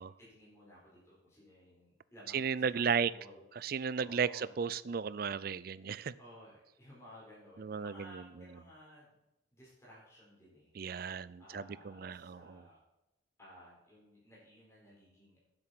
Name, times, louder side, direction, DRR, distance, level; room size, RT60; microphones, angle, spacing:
voice 1, 0.2-4.5 6.2-9.2 9.5-10.7 11.4-12.8 13.4-15.5, equal, 15° left, -6 dB, 4.6 m, -57 dB
voice 2, 2.3-3.1 3.6-6.1 7.6-8.2 10.8-12.6, right 6 dB, 50° right, 18 dB, 0.4 m, -34 dB
9.7 x 7.9 x 5.9 m, 0.95 s
head